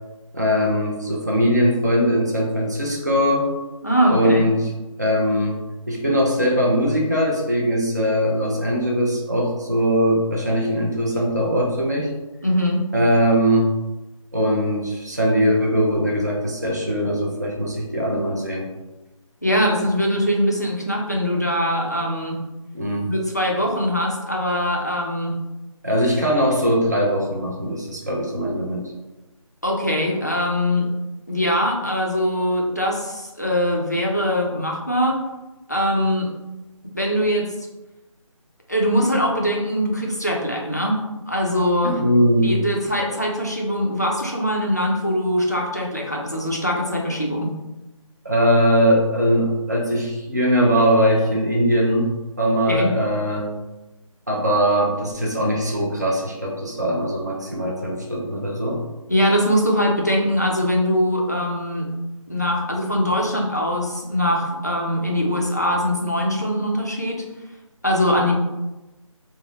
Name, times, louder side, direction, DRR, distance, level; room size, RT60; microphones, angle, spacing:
voice 1, 0.3-3.5 4.1-4.7 5.0-12.1 12.9-13.7 14.3-18.7 22.7-23.1 25.8-28.8 41.8-42.5 48.2-52.1 52.4-53.5 54.3-58.8, equal, 30° right, -2 dB, 0.4 m, -20 dB
voice 2, 3.8-4.5 12.4-12.8 19.4-22.4 23.1-25.4 29.6-30.9 31.3-35.2 35.7-36.3 36.9-37.5 38.7-41.0 41.3-42.0 42.4-47.5 52.7-52.9 59.1-61.9 62.3-67.2 67.8-68.4, equal, 30° left, -1 dB, 0.4 m, -22 dB
2.9 x 2.0 x 3.8 m, 1.1 s
figure-of-eight pair, 180°, 18 cm